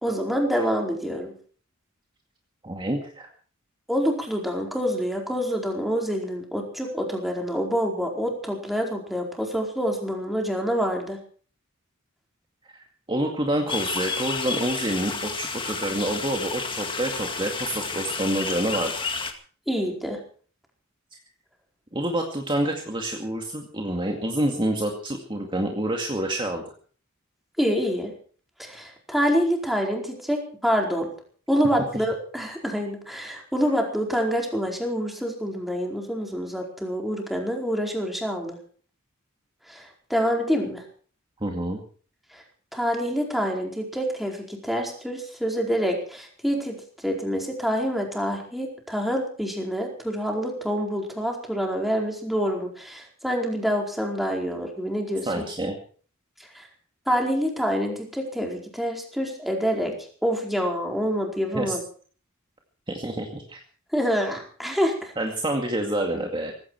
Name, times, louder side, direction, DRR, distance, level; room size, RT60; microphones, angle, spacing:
voice 1, 0.0-1.3 3.9-11.2 19.7-20.2 27.6-28.1 28.6-31.1 31.5-38.6 39.7-40.8 42.3-42.4 42.7-46.8 47.0-55.5 56.5-56.7 57.1-60.0 60.2-61.8 63.9-65.1, equal, ahead, 1 dB, 4.6 m, -26 dB
voice 2, 2.6-3.3 12.7-19.1 21.9-26.6 41.4-41.8 55.3-55.8 61.5-61.8 62.9-63.6 65.2-66.5, right 1 dB, 25° right, 2 dB, 2.2 m, -27 dB
sound 1, 13.7-19.3, left 4 dB, 25° left, 2.2 m, -31 dB
18.0 x 16.5 x 4.7 m, 0.43 s
head